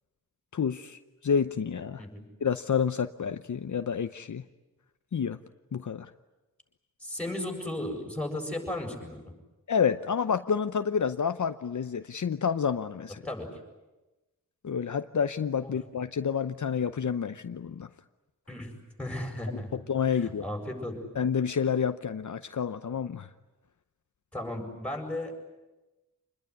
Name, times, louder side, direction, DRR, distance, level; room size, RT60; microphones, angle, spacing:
voice 1, 0.5-2.0 2.4-4.4 5.1-5.4 5.7-6.1 9.7-13.2 14.6-17.9 19.9-20.4 21.2-23.3, left 7 dB, 65° left, 9 dB, 0.8 m, -29 dB
voice 2, 7.0-9.3 13.2-13.5 15.6-15.7 18.5-18.7 19.0-19.7 20.1-21.0 24.3-25.3, left 1 dB, 5° left, 2 dB, 7.6 m, -35 dB
27.0 x 21.0 x 9.9 m, 1.1 s
wide cardioid pair, 80°, 33 cm